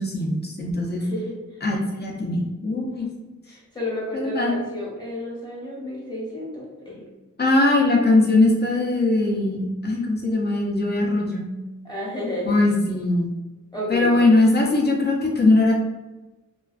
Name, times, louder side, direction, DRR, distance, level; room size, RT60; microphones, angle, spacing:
voice 1, 0.0-1.0 1.6-3.1 4.1-4.6 7.4-11.5 12.4-13.3 13.9-15.7, left 2 dB, 30° left, -1 dB, 0.5 m, -20 dB
voice 2, 1.0-1.3 3.5-7.0 11.8-12.6 13.7-14.3, left 1 dB, 15° left, -5 dB, 0.9 m, -31 dB
2.3 x 2.3 x 2.4 m, 1.1 s
wide cardioid pair, 90°, 32 cm